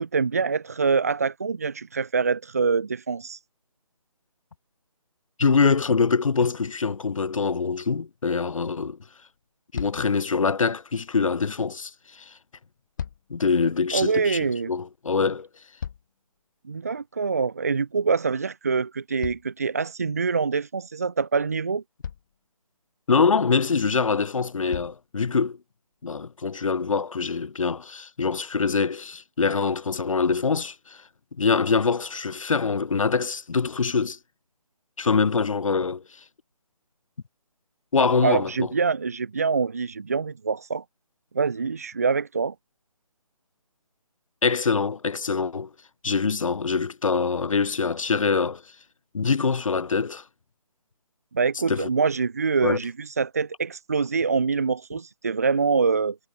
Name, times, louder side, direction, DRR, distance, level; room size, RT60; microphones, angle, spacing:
voice 1, 0.0-3.4 13.9-14.7 16.7-21.8 38.0-40.8 41.3-42.5 51.3-56.2, right 5 dB, 25° right, 0.4 m, -25 dB
voice 2, 5.4-9.0 9.7-11.9 12.3-12.4 13.3-15.5 23.1-25.6 26.0-31.0 31.4-34.2 35.0-36.0 37.9-38.7 44.4-45.7 46.0-48.6 49.1-50.2 51.7-51.9 52.6-52.8, left 5 dB, 60° left, 0.7 m, -24 dB
sound 1, 9.3-9.5 9.7-10.2 12.6-13.5 15.3-16.4 19.2-20.2 21.4-21.5 22.0-22.5 23.9-24.0 24.7-25.1 25.9-26.0, left 8 dB, 30° left, 1.3 m, -37 dB
figure-of-eight pair, 150°, 19 cm